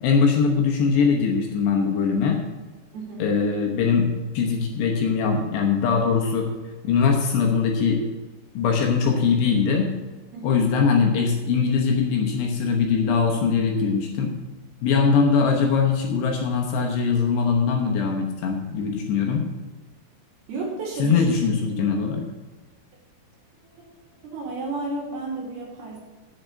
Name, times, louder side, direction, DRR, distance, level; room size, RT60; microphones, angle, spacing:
voice 1, 0.0-2.4 3.2-6.5 6.8-8.0 8.5-9.9 10.4-14.3 14.8-19.4 21.0-22.3, left 5 dB, 70° left, 1 dB, 2.9 m, -21 dB
voice 2, 2.9-3.3 10.3-10.5 20.5-21.3 23.8-23.9 24.2-26.0, right 3 dB, 60° right, -3 dB, 4.1 m, -32 dB
8.3 x 7.3 x 8.3 m, 1.2 s
omnidirectional pair, 5.6 m